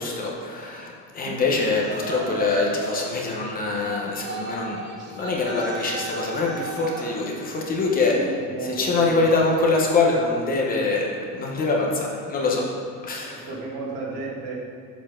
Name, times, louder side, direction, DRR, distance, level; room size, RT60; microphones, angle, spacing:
voice 1, 0.0-4.8 5.1-8.2 8.6-12.6 13.0-13.5, left 3 dB, 25° left, -1 dB, 0.9 m, -24 dB
Yell, 1.8-3.1 3.8-7.2, right 4 dB, 35° right, 0.7 m, -34 dB
voice 2, 7.9-9.3 13.2-14.5, right 3 dB, 75° right, -3 dB, 1.9 m, -33 dB
7.2 x 6.8 x 3.7 m, 2.5 s
cardioid pair, 180°, 33 cm